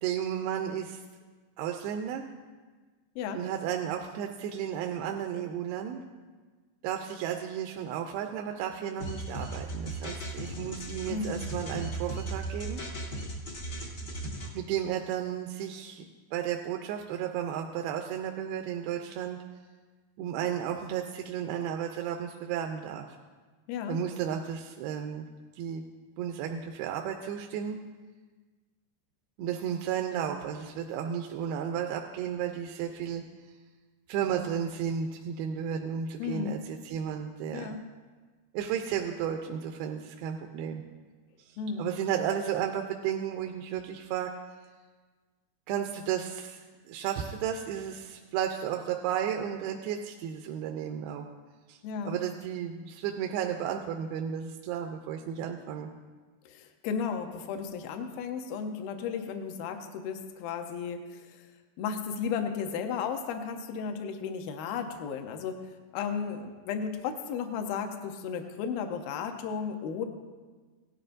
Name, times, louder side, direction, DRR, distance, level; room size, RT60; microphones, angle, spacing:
voice 1, 0.0-1.0 1.6-2.3 3.3-6.0 6.8-12.8 14.5-19.4 20.2-23.1 23.9-25.3 25.6-25.8 26.2-27.8 29.4-33.2 34.1-37.8 38.5-40.8 41.4-44.3 45.7-46.6 46.9-51.3 51.7-51.8 52.0-55.9, right 9 dB, 85° right, 3 dB, 2.5 m, -33 dB
sound 1, 9.0-14.5, right 2 dB, 55° left, 1.1 m, -37 dB
voice 2, 11.1-11.4 23.7-24.0 36.2-36.6 37.5-37.8 41.6-41.9 51.8-52.2 56.5-61.5 61.8-65.6 65.9-70.1, left 6 dB, 75° left, 6 dB, 2.5 m, -34 dB
17.5 x 12.0 x 2.6 m, 1.4 s
omnidirectional pair, 4.4 m